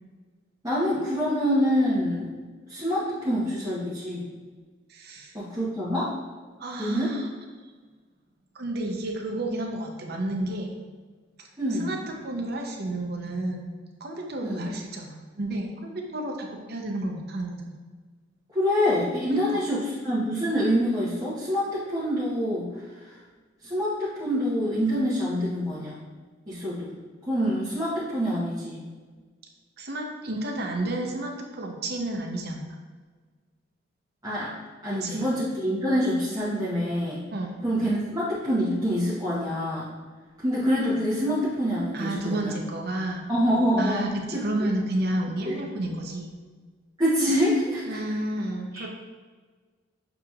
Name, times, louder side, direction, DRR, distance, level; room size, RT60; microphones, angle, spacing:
voice 1, 0.6-2.3 2.7-4.3 5.3-6.1 6.8-7.1 11.6-11.9 14.4-14.7 18.5-22.7 23.7-26.0 26.5-26.9 27.3-28.8 34.2-34.5 34.8-37.3 37.6-39.9 40.4-42.6 43.3-44.7 45.4-45.6 47.0-48.0 48.7-48.8, equal, 20° right, -11 dB, 1.0 m, -26 dB
voice 2, 4.9-5.3 6.6-7.3 8.5-10.8 11.8-13.7 14.0-17.7 19.3-19.6 29.8-32.8 34.9-35.2 37.3-37.6 41.9-43.2 43.8-46.3 47.9-48.9, right 1 dB, 55° right, 2 dB, 0.6 m, -31 dB
6.7 x 2.8 x 2.4 m, 1.4 s
head